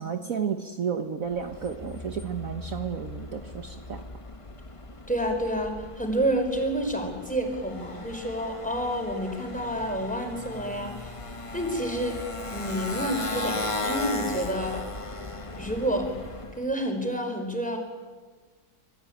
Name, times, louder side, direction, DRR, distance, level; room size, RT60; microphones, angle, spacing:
voice 1, 0.0-4.0, right 7 dB, 55° right, 5 dB, 1.6 m, -32 dB
Motorcycle, 1.3-16.7, left 2 dB, 20° left, 1.2 m, -37 dB
voice 2, 5.1-11.1 11.5-12.2 12.5-14.8 15.5-16.1 16.6-17.8, right 1 dB, 5° left, 3 dB, 5.0 m, -29 dB
26.5 x 22.0 x 8.9 m, 1.4 s
omnidirectional pair, 1.8 m